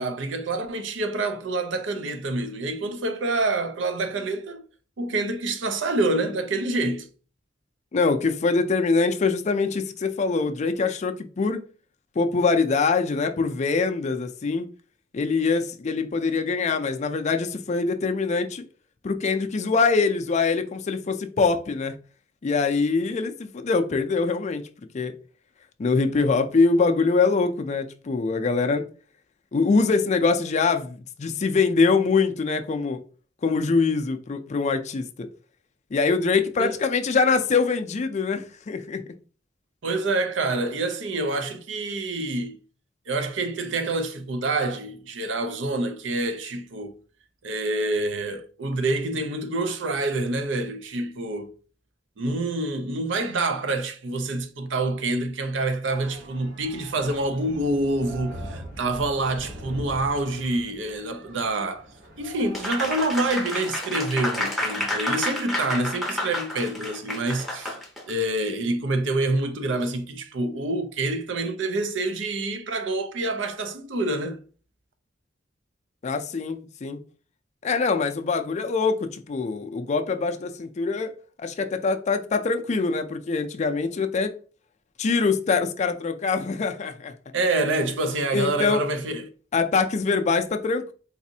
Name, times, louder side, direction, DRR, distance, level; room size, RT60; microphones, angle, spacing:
voice 1, 0.0-4.6 5.0-7.1 36.6-36.7 39.8-42.5 43.1-46.9 47.4-51.5 52.2-61.8 62.2-67.8 68.1-74.4 87.3-89.2, right 2 dB, 70° right, 0.5 m, -27 dB
voice 2, 7.9-11.6 12.2-14.7 15.1-18.6 19.0-21.9 22.4-24.7 24.9-25.1 25.8-28.9 29.5-33.0 33.4-35.3 35.9-39.0 76.0-77.0 77.6-81.1 81.4-84.3 85.0-87.1 88.3-88.8 89.5-90.9, left 4 dB, 35° left, 0.4 m, -24 dB
sound 1, 55.8-63.8, equal, 50° right, 1.1 m, -42 dB
Applause, 62.5-68.1, left 1 dB, ahead, 0.6 m, -30 dB
4.0 x 2.5 x 2.7 m
head